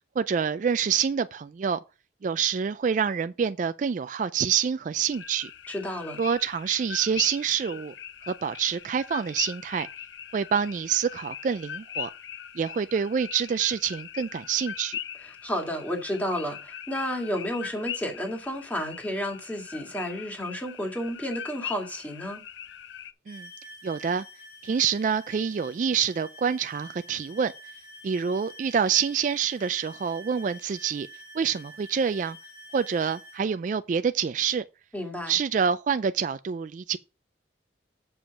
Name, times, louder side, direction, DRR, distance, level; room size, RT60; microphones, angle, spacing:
voice 1, 0.2-1.8 2.2-5.5 6.2-7.9 8.3-9.9 10.3-12.1 12.6-15.0 23.3-23.5 23.8-24.3 24.6-27.5 28.0-31.1 31.3-32.4 32.7-34.6 35.3-37.0, right 7 dB, 45° right, 0.3 m, -27 dB
sound 1, 5.1-23.1, left 9 dB, 85° left, 0.7 m, -40 dB
voice 2, 5.7-6.2 15.2-22.4 34.9-35.4, equal, 10° left, 1.9 m, -31 dB
sound 2, 23.3-33.4, left 1 dB, 40° left, 2.3 m, -47 dB
7.1 x 5.1 x 5.7 m
head